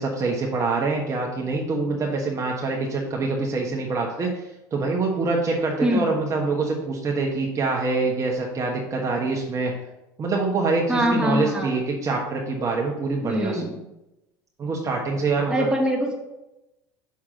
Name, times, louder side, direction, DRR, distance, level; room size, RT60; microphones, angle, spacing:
voice 1, 0.0-9.7 10.2-13.6 14.6-15.7, right 3 dB, 35° right, -1 dB, 1.3 m, -25 dB
voice 2, 10.9-11.8 13.2-13.8 15.5-16.2, equal, 10° right, -1 dB, 2.0 m, -23 dB
7.1 x 6.4 x 3.8 m, 0.95 s
hypercardioid pair, 90°, 9 cm